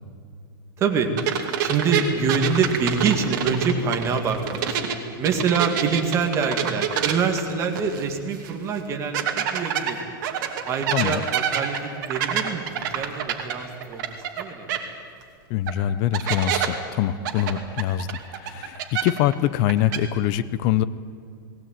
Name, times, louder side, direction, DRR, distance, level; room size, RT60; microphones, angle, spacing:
voice 1, 0.8-1.1 1.6-4.8 5.2-10.1 10.7-14.8, right 5 dB, 25° right, 4 dB, 2.1 m, -25 dB
sound 1, 1.2-5.0 5.2-8.1 8.4-8.5 9.1-14.4 14.7-14.8 15.7-15.8 16.1-16.7 17.3-19.3 19.6-20.0, right 9 dB, 50° right, 2.6 m, -26 dB
voice 2, 15.5-20.8, left 12 dB, 35° left, 16 dB, 0.7 m, -24 dB
19.0 x 18.0 x 9.2 m, 2.4 s
supercardioid pair, 160°, 12 cm